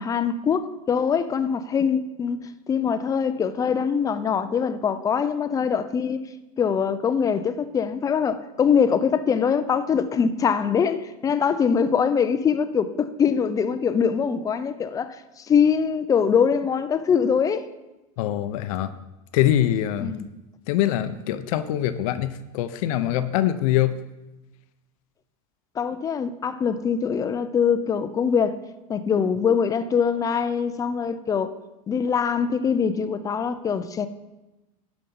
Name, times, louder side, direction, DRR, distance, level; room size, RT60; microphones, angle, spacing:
voice 1, 0.0-6.2 6.6-17.7 20.0-20.2 25.8-28.6 28.9-31.6 31.9-34.1, left 6 dB, 20° left, 0.5 m, -23 dB
voice 2, 18.2-18.9 19.3-20.1 20.7-24.0, left 12 dB, 70° left, 0.7 m, -23 dB
11.5 x 5.3 x 5.4 m
supercardioid pair, 135°, 18 cm